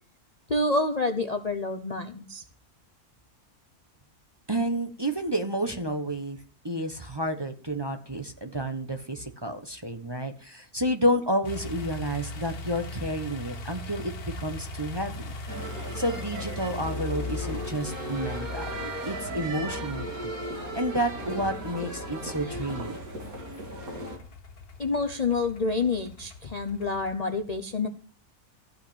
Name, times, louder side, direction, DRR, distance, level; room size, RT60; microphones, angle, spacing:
voice 1, 0.5-2.4 24.8-27.9, left 3 dB, 35° left, 7 dB, 0.7 m, -28 dB
voice 2, 4.5-6.4 6.6-15.3 15.9-18.7 19.0-20.4 20.7-23.0, equal, 20° right, 6 dB, 1.0 m, -30 dB
sound 1, 11.4-27.2, left 3 dB, 90° left, 1.9 m, -40 dB
sound 2, 15.5-24.2, right 1 dB, 70° right, 3.2 m, -36 dB
15.0 x 5.8 x 8.7 m, 0.43 s
omnidirectional pair, 1.6 m